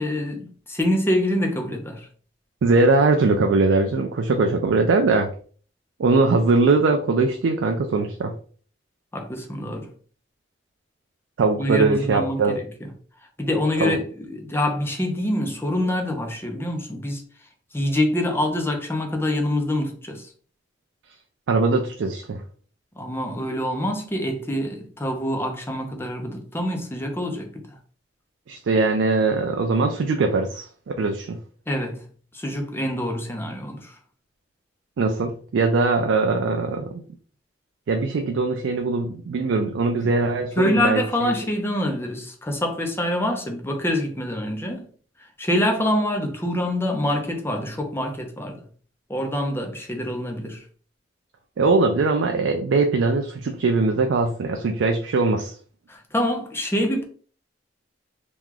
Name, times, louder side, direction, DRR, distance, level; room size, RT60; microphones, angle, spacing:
voice 1, 0.0-2.1 9.1-9.9 11.6-12.6 13.4-17.2 17.7-20.3 23.0-27.8 31.7-32.0 32.3-33.9 40.6-44.8 45.4-48.6 49.1-50.6 55.9-57.0, left 1 dB, 15° left, 0.6 m, -25 dB
voice 2, 2.6-5.3 6.0-8.3 11.4-12.6 13.8-14.0 21.5-22.4 28.5-31.4 35.0-37.0 37.9-41.3 51.6-55.5, right 3 dB, 85° right, 0.4 m, -21 dB
3.0 x 2.3 x 3.7 m
head